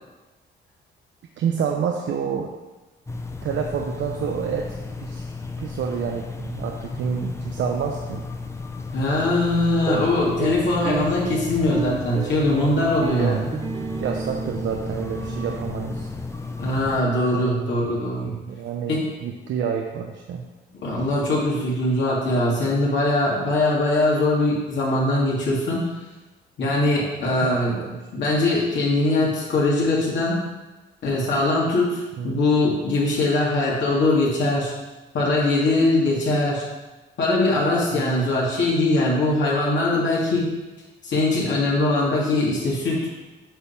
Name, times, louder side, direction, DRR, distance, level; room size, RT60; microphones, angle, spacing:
voice 1, 1.4-2.5 3.4-5.3 5.6-8.3 13.1-13.4 14.0-16.1 17.3-17.8 18.5-20.4 27.4-28.0 32.2-32.4 37.9-38.3, right 7 dB, 65° right, 2 dB, 0.7 m, -28 dB
sound 1, 3.1-17.0, left 3 dB, 15° left, 0.7 m, -34 dB
voice 2, 8.9-13.5 16.6-18.4 18.9-19.1 20.7-25.8 26.6-27.7 28.1-30.4 31.0-34.7 35.1-36.6 37.2-40.5 41.0-43.1, left 2 dB, 65° left, -5 dB, 2.4 m, -21 dB
sound 2, 9.8-16.4, right 5 dB, 25° right, 0.4 m, -32 dB
8.7 x 3.5 x 5.9 m, 1.2 s
cardioid pair, 90°, 20 cm